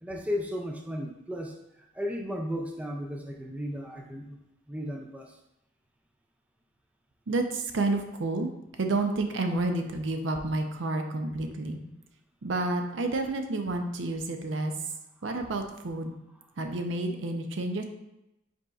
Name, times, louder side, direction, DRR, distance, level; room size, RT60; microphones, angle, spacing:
voice 1, 0.0-1.5 1.9-4.4 4.7-5.4, equal, 5° right, 1 dB, 0.3 m, -34 dB
voice 2, 7.3-8.5 8.8-11.8 12.4-14.7 15.2-16.1 16.6-17.8, right 2 dB, 65° right, 5 dB, 0.5 m, -30 dB
5.2 x 4.1 x 2.4 m, 0.92 s
head